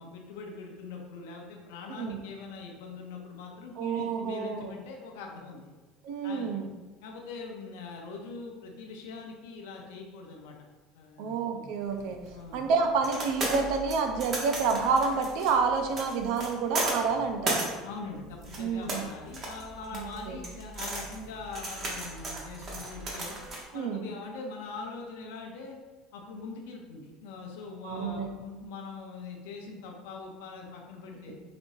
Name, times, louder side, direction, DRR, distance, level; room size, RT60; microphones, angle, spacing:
voice 1, 0.0-5.7 6.2-6.5 7.0-10.6 10.9-11.8 12.3-12.7 17.8-23.4 23.7-25.8 26.1-31.4, left 4 dB, 85° left, 1 dB, 0.7 m, -42 dB
voice 2, 1.9-2.2 3.8-4.7 6.0-6.7 11.2-12.2 12.5-17.7 18.6-19.0 20.3-20.4 23.7-24.1 27.8-28.3 31.3-31.4, right 5 dB, 70° right, 5 dB, 0.5 m, -29 dB
sound 1, 11.9-23.6, right 2 dB, 40° right, 1.2 m, -36 dB
5.1 x 2.9 x 2.7 m, 1.3 s
supercardioid pair, 100°, 0 cm